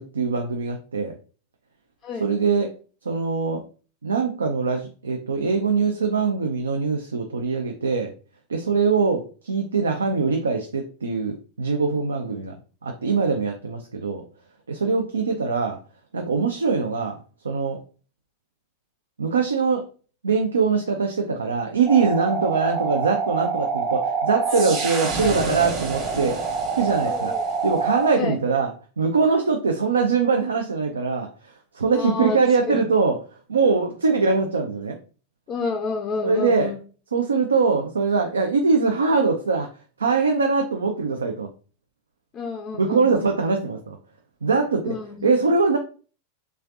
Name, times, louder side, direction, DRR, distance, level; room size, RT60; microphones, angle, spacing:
voice 1, 0.1-1.2 2.2-2.7 3.1-3.6 4.0-8.1 8.5-12.5 12.8-14.2 14.7-15.8 16.1-17.2 17.4-17.8 19.2-19.9 20.2-26.4 26.8-33.2 33.5-35.0 36.2-36.7 37.1-39.7 40.0-41.5 42.7-44.0 44.4-44.9 45.2-45.8, right 4 dB, 70° right, 4 dB, 0.4 m, -22 dB
sound 1, 21.9-28.1, right 4 dB, 35° right, 1.1 m, -26 dB
voice 2, 27.1-27.4 28.1-28.4 31.9-32.4 32.7-32.8 35.5-36.8 42.3-43.3 44.8-45.3, left 4 dB, 30° left, 4 dB, 0.4 m, -29 dB
3.5 x 3.2 x 2.5 m, 0.37 s
figure-of-eight pair, 90°, 0 cm